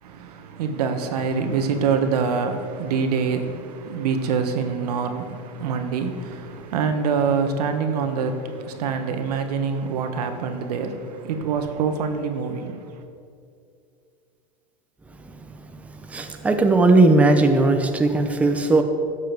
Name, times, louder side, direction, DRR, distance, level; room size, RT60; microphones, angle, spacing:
voice 1, 0.0-13.0, right 5 dB, 80° right, 1.2 m, -25 dB
voice 2, 16.1-18.8, right 2 dB, 5° right, 0.6 m, -17 dB
12.0 x 7.4 x 4.6 m
supercardioid pair, 135°, 20 cm